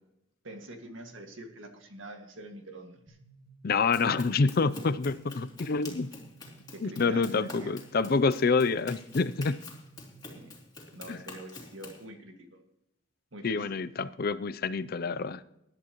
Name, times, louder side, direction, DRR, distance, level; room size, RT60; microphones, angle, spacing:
voice 1, 0.4-3.2 6.7-7.8 10.3-10.6 10.9-12.6 13.3-13.7, right 1 dB, 70° right, 2.0 m, -45 dB
sound 1, 3.1-10.6, right 4 dB, 5° right, 2.2 m, -56 dB
voice 2, 3.6-6.1 6.8-9.6 11.1-11.2 13.4-15.4, left 4 dB, 50° left, 0.5 m, -27 dB
Run, 3.9-12.0, left 3 dB, 20° left, 2.8 m, -47 dB
19.5 x 11.0 x 3.0 m
head